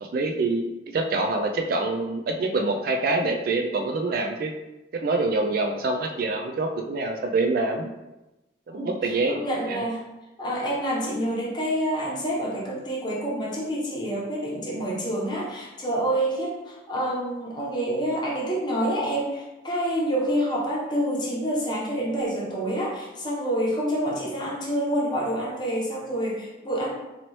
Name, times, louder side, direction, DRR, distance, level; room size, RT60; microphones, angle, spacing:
voice 1, 0.0-4.5 4.9-7.9 8.7-9.4 9.7-9.8, right 3 dB, 50° right, 3 dB, 0.3 m, -26 dB
voice 2, 8.7-10.0 10.4-26.9, right 1 dB, 25° left, -5 dB, 0.9 m, -27 dB
4.0 x 2.9 x 3.1 m, 1.0 s
head